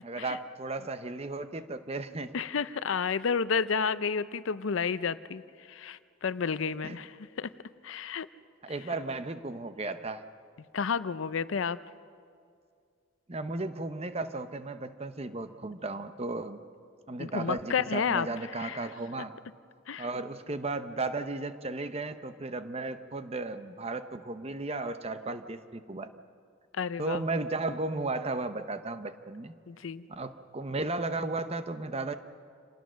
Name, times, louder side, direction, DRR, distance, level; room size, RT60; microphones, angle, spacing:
voice 1, 0.0-2.4 6.8-7.0 8.6-10.2 13.3-16.6 17.1-19.3 20.0-26.1 27.0-29.5 30.1-32.1, right 2 dB, 30° right, 10 dB, 0.8 m, -35 dB
voice 2, 2.3-5.4 5.7-7.5 7.8-8.3 10.7-11.8 17.2-18.3 18.6-18.9 19.9-20.1 26.8-27.2 29.7-30.1, left 6 dB, 80° left, 15 dB, 0.5 m, -31 dB
26.5 x 19.0 x 6.3 m, 2.2 s
head